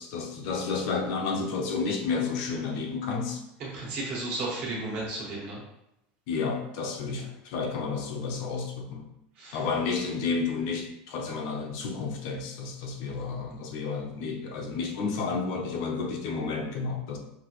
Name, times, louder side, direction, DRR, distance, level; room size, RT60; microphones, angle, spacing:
voice 1, 0.0-3.4 6.3-9.1 9.5-17.2, left 4 dB, 50° left, 2 dB, 0.7 m, -31 dB
voice 2, 3.6-5.6 9.4-9.6, right 2 dB, 35° right, -3 dB, 1.5 m, -33 dB
5.9 x 2.8 x 3.1 m, 0.83 s
supercardioid pair, 175°, 5 cm